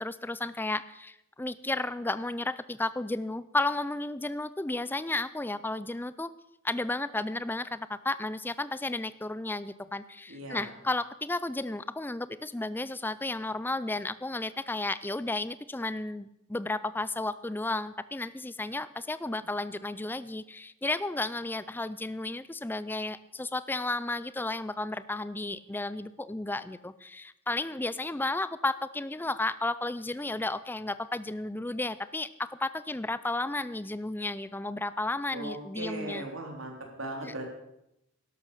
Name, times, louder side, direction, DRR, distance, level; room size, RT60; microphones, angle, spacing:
voice 1, 0.0-6.3 6.6-36.3 37.2-37.4, left 2 dB, 10° left, 15 dB, 0.4 m, -33 dB
voice 2, 10.3-10.7 35.3-37.4, right 1 dB, 65° right, 2 dB, 3.5 m, -38 dB
12.0 x 11.5 x 6.6 m, 0.84 s
head